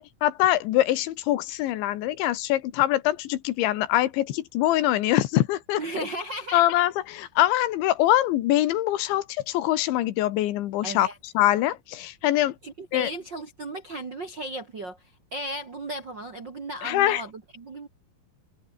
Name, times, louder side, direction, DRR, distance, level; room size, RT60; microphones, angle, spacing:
voice 1, 0.0-5.8 6.5-11.1 11.4-12.6 12.9-13.1 16.8-17.2, left 14 dB, 80° left, 3.6 m, -23 dB
voice 2, 5.8-6.6 10.8-11.2 12.6-15.0 15.3-17.9, right 1 dB, 45° right, 1.5 m, -35 dB
omnidirectional pair, 5.4 m